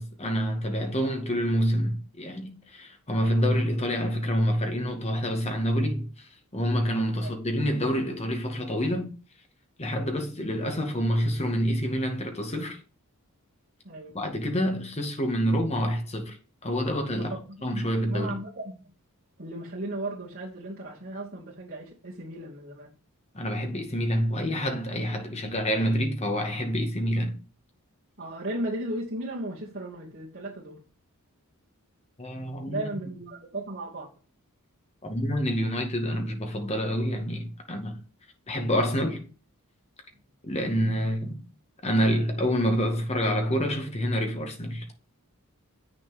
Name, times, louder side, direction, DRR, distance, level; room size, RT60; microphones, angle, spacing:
voice 1, 0.0-9.1 9.8-12.8 14.1-16.4 16.6-17.3 17.6-18.3 23.3-27.3 32.2-32.8 35.0-38.0 38.5-39.2 40.4-41.4 41.8-44.8, equal, 30° left, 2.2 m, -27 dB
voice 2, 13.8-14.2 17.1-18.8 19.4-22.9 28.2-30.8 32.7-34.1, right 1 dB, 45° right, 2.7 m, -36 dB
8.7 x 6.6 x 5.2 m
head